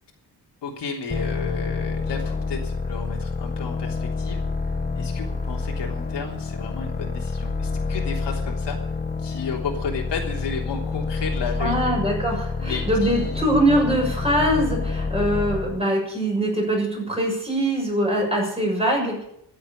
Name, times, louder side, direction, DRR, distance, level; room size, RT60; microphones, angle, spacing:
voice 1, 0.6-4.4 5.0-8.8 9.2-12.0 12.6-13.6, left 5 dB, 80° left, -1 dB, 3.5 m, -33 dB
sound 1, 1.1-15.8, left 4 dB, 25° left, 1.3 m, -28 dB
voice 2, 11.6-19.2, right 1 dB, 15° right, -2 dB, 6.7 m, -23 dB
14.0 x 8.3 x 9.9 m, 0.75 s
wide cardioid pair, 145°, 41 cm